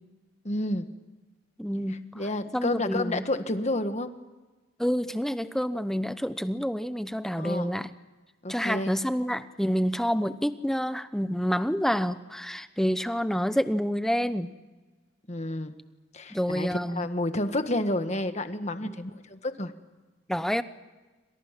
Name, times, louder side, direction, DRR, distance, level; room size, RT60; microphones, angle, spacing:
voice 1, 0.4-0.9 2.1-4.1 7.4-7.7 8.4-8.9 15.3-15.7 16.1-19.7, left 1 dB, 35° left, 8 dB, 1.5 m, -30 dB
voice 2, 1.6-2.1 2.5-3.2 4.8-7.9 8.5-14.5 16.3-17.1 18.8-18.9 20.3-20.6, equal, ahead, 11 dB, 0.8 m, -28 dB
28.0 x 26.0 x 6.0 m, 1.3 s
head